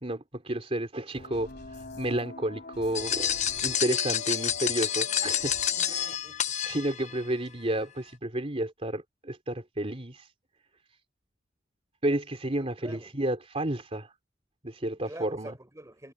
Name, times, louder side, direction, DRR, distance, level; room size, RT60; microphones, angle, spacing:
voice 1, 0.0-6.1 6.6-10.3 12.0-14.1 14.6-15.6, right 1 dB, 30° right, 3.5 m, -31 dB
sound 1, 1.1-6.2, left 3 dB, 55° left, 4.2 m, -44 dB
sound 2, 3.0-7.2, left 9 dB, 40° left, 0.9 m, -29 dB
voice 2, 5.7-6.6 12.8-13.1 15.0-16.1, right 1 dB, 15° right, 4.9 m, -46 dB
head